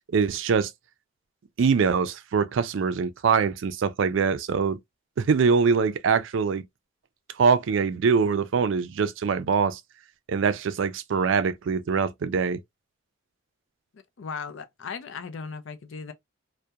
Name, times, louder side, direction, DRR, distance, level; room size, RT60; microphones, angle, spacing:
voice 1, 0.1-0.7 1.6-4.8 5.2-6.6 7.4-9.8 10.3-12.6, right 5 dB, 70° right, 0.4 m, -23 dB
voice 2, 13.9-16.1, left 5 dB, 70° left, 0.4 m, -37 dB
2.7 x 2.1 x 2.2 m
head